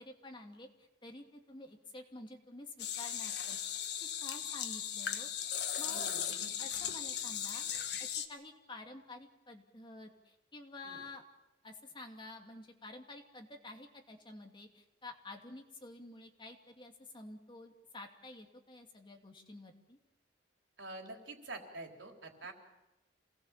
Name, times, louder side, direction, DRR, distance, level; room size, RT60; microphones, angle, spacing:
voice 1, 0.0-5.3 5.8-6.1 6.6-7.6 8.0-11.2 11.6-20.0, left 2 dB, 25° left, 3 dB, 2.6 m, -50 dB
sound 1, 2.8-8.3, left 9 dB, 65° left, 1.6 m, -37 dB
voice 2, 5.8-6.5 10.8-11.0 20.8-22.5, right 2 dB, 80° right, 2 dB, 4.0 m, -47 dB
27.5 x 19.0 x 7.4 m, 0.97 s
head